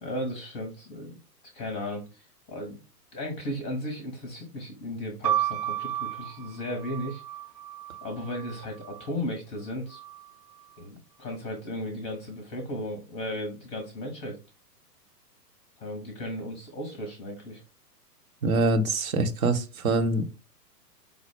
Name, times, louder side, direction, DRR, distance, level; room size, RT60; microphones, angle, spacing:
voice 1, 0.0-1.2 1.5-2.8 3.1-7.2 8.0-10.0 10.8-14.4 15.8-17.6, left 1 dB, 15° left, 4 dB, 0.6 m, -35 dB
sound 1, 5.2-9.1 9.9-10.6, right 11 dB, 80° right, 0.5 m, -33 dB
voice 2, 18.4-20.4, right 2 dB, 60° right, 7 dB, 0.9 m, -25 dB
5.0 x 2.1 x 4.7 m, 0.30 s
figure-of-eight pair, 120°, 49 cm